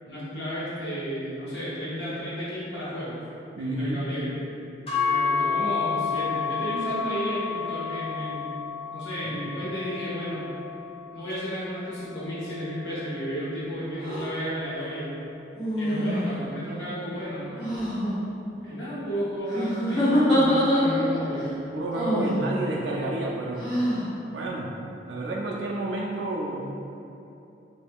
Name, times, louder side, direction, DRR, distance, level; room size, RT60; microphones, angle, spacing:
voice 1, 0.1-3.2 3.6-4.3 5.0-8.5 8.9-10.4 11.1-15.1 15.7-17.6 18.6-21.6, equal, 85° left, -10 dB, 1.3 m, -33 dB
voice 2, 3.6-4.0 9.2-9.5 21.7-23.7 24.3-24.7 25.1-26.8, right 2 dB, 80° right, -3 dB, 0.4 m, -30 dB
sound 1, 4.9-13.1, left 6 dB, 35° left, 0.8 m, -31 dB
sound 2, 14.0-14.2 15.5-16.4 17.5-18.1 19.5-21.2 21.9-22.4 23.6-24.0, equal, 5° right, 1.2 m, -24 dB
2.9 x 2.6 x 3.5 m, 2.8 s
head